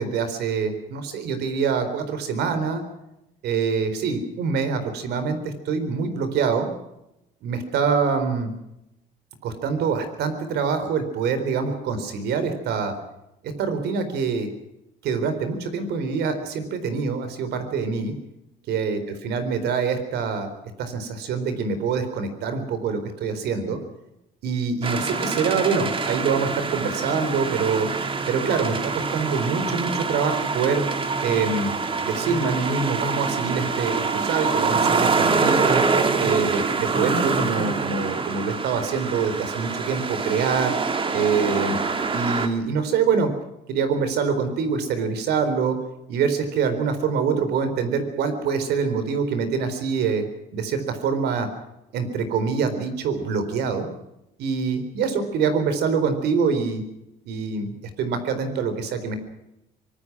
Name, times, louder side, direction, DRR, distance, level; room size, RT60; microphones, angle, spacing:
voice 1, 0.0-2.8 3.4-6.7 7.4-8.5 9.4-12.9 13.4-14.5 15.0-18.1 18.7-20.5 20.8-23.8 24.4-27.9 28.3-30.8 31.2-31.7 32.0-35.8 36.2-40.7 41.1-41.8 42.1-43.3 43.7-45.8 46.1-50.2 50.5-51.5 51.9-53.9 54.4-56.8 57.3-59.2, right 5 dB, 75° right, 10 dB, 4.1 m, -25 dB
sound 1, 24.8-42.5, right 4 dB, 30° right, 2.2 m, -25 dB
24.5 x 19.5 x 6.2 m, 0.86 s
cardioid pair, 110°, 17 cm